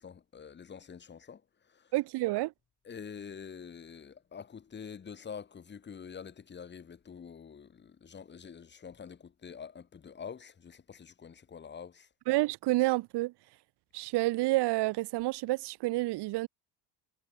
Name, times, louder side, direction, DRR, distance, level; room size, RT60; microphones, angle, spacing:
voice 1, 0.0-1.4 1.7-1.9 2.9-12.1, left 6 dB, 20° left, 1.9 m, -46 dB
voice 2, 1.9-2.5 12.3-13.3 13.9-16.5, right 19 dB, 55° right, 1.0 m, -29 dB
cardioid pair, 150°, 49 cm